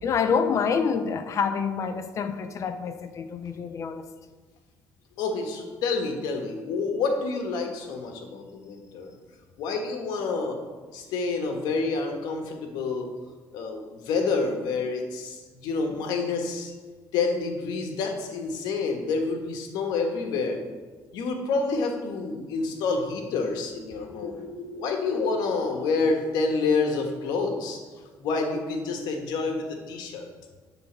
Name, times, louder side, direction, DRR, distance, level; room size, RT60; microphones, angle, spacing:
voice 1, 0.0-4.0 25.1-25.3, left 6 dB, 45° left, 0.7 m, -27 dB
voice 2, 5.2-9.1 9.6-10.6 10.9-13.1 13.5-16.7 17.1-20.6 21.1-27.8 28.2-30.2, left 4 dB, 80° left, 1.4 m, -28 dB
10.5 x 4.0 x 6.2 m
cardioid pair, 115°, 7 cm